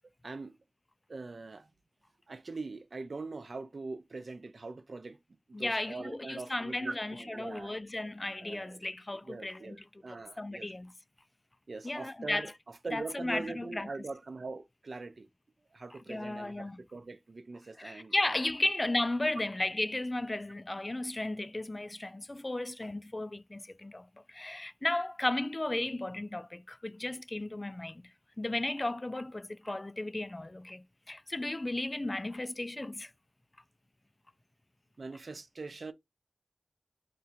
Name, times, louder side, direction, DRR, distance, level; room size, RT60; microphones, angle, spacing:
voice 1, 0.2-0.6 1.1-1.7 2.3-5.2 5.5-7.8 8.4-8.8 9.3-10.7 11.7-15.3 15.7-18.1 35.0-35.9, right 3 dB, 65° right, 0.5 m, -42 dB
voice 2, 5.5-10.9 11.8-12.5 12.9-13.9 15.9-16.8 17.8-28.1 28.4-33.1, left 2 dB, 30° left, 0.3 m, -35 dB
2.8 x 2.5 x 4.1 m
cardioid pair, 45°, 0 cm